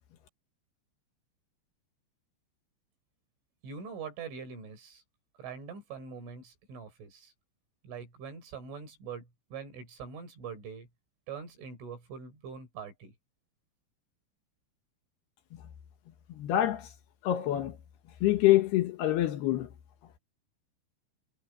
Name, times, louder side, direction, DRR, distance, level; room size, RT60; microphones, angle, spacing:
voice 1, 3.6-5.0 5.4-7.3 7.8-10.9 11.3-13.1, right 6 dB, 80° right, 7.8 m, -43 dB
voice 2, 16.3-16.9 17.2-17.8 18.2-19.7, left 14 dB, 70° left, 2.9 m, -26 dB
omnidirectional pair, 5.5 m